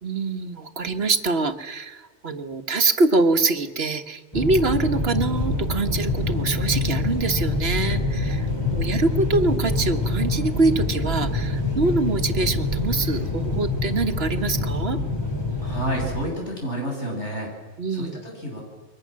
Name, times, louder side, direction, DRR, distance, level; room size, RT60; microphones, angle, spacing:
voice 1, 0.0-15.0 17.8-18.2, right 3 dB, 55° right, 8 dB, 1.6 m, -24 dB
sound 1, 4.3-16.2, left 2 dB, 20° left, 3.7 m, -25 dB
voice 2, 15.6-17.5 17.9-18.6, right 1 dB, 70° left, 0 dB, 8.3 m, -30 dB
29.0 x 23.0 x 7.6 m, 1.2 s
omnidirectional pair, 1.2 m